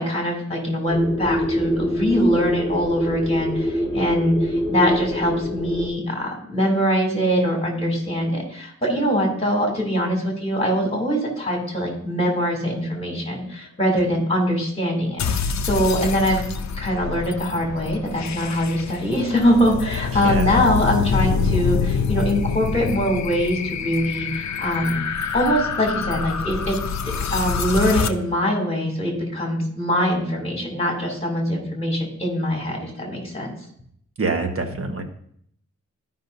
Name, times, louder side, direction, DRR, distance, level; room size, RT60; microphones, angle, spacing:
voice 1, 0.0-16.4 16.8-25.0 25.3-26.8 27.0-33.5, equal, 20° left, -1 dB, 2.8 m, -23 dB
sound 1, 0.9-5.9, equal, 5° left, 1.6 m, -25 dB
sound 2, 15.2-28.1, left 6 dB, 65° left, 0.5 m, -26 dB
voice 2, 20.1-20.5 34.2-35.0, right 3 dB, 50° right, 3 dB, 1.2 m, -25 dB
13.5 x 5.5 x 2.7 m, 0.66 s
wide cardioid pair, 100°, 30 cm